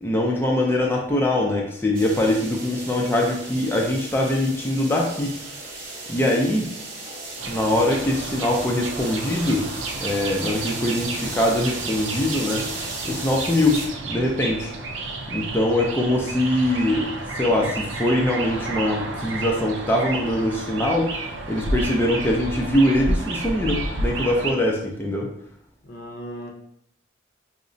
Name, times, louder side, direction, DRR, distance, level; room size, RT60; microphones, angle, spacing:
voice 1, 0.0-5.3 6.1-6.7 7.5-9.7 10.0-12.7 13.0-13.8 14.0-14.7 15.3-21.2 21.5-25.3, left 1 dB, 10° left, -1 dB, 0.4 m, -22 dB
sound 1, 1.9-13.9, right 2 dB, 50° right, 0.9 m, -35 dB
sound 2, 7.4-24.5, right 2 dB, 90° right, 0.5 m, -31 dB
voice 2, 15.9-16.3 25.8-26.5, equal, 55° left, 2 dB, 0.6 m, -38 dB
4.7 x 2.1 x 2.6 m, 0.70 s
head